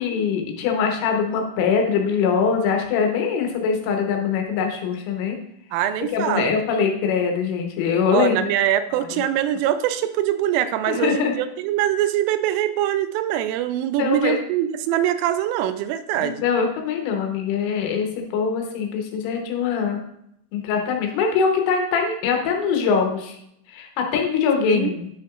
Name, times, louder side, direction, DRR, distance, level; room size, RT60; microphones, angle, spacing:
voice 1, 0.0-5.4 6.1-8.5 9.0-9.1 10.9-11.3 14.0-14.4 16.2-18.1 18.3-20.0 20.5-23.4 23.7-25.2, left 6 dB, 85° left, 3 dB, 3.5 m, -23 dB
voice 2, 5.7-6.5 8.1-16.5 24.7-24.9, right 11 dB, 90° right, 11 dB, 3.1 m, -23 dB
9.7 x 5.8 x 2.4 m, 0.75 s
omnidirectional pair, 5.6 m